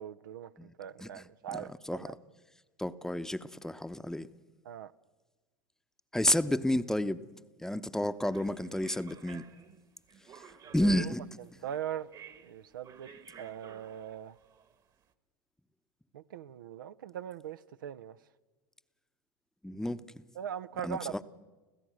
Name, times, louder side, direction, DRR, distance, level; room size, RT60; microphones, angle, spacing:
voice 1, 0.0-2.1 4.7-4.9 10.6-11.0 11.6-12.1 12.4-13.1 13.4-14.3 16.1-18.2 20.4-21.2, right 9 dB, 80° right, 0.6 m, -40 dB
voice 2, 1.0-2.2 2.8-4.3 6.1-7.2 7.6-9.4 10.4-11.3 19.6-20.0 20.8-21.2, left 1 dB, 5° left, 0.8 m, -31 dB
sound 1, 8.3-15.0, right 7 dB, 40° right, 1.5 m, -54 dB
26.0 x 16.0 x 6.3 m
hypercardioid pair, 90°, 11 cm